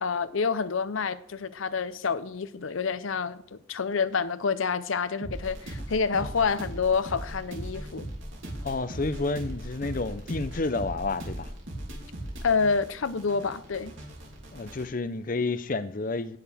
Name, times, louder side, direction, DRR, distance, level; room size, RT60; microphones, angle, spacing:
voice 1, 0.0-8.1 12.4-13.9, left 5 dB, 85° left, 0.7 m, -28 dB
sound 1, 5.2-14.8, right 1 dB, 75° right, 2.8 m, -39 dB
voice 2, 6.0-6.3 8.6-11.5 14.5-16.4, left 3 dB, 45° left, 0.6 m, -30 dB
17.5 x 6.5 x 3.5 m
head